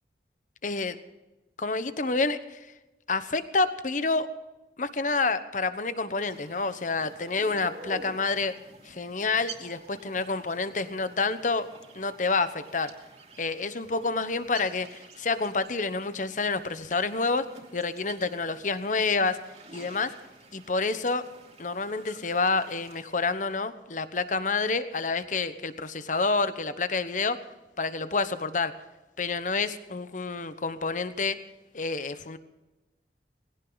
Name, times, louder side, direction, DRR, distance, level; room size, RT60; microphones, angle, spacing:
voice 1, 0.6-1.0 1.6-2.6 3.1-4.3 4.8-8.5 8.8-11.7 11.9-12.9 13.4-17.5 17.7-19.4 19.7-20.1 20.5-21.3 21.6-27.4 27.8-28.7 29.2-31.4 31.7-32.4, left 3 dB, 45° left, 11 dB, 1.1 m, -28 dB
sound 1, 6.1-23.1, right 3 dB, 35° right, 2.9 m, -49 dB
20.0 x 17.0 x 4.0 m, 1.1 s
head